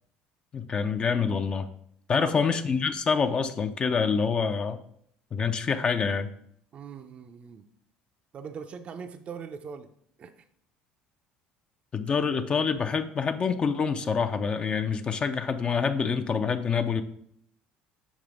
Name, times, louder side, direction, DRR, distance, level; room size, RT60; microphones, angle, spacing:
voice 1, 0.5-1.7 2.1-4.8 5.3-6.3 11.9-17.0, left 5 dB, 35° left, 8 dB, 0.5 m, -26 dB
voice 2, 2.1-2.5 6.7-7.7 8.3-9.9 10.2-10.4, right 6 dB, 40° right, 7 dB, 0.5 m, -41 dB
7.3 x 3.4 x 5.0 m, 0.69 s
supercardioid pair, 100°, 3 cm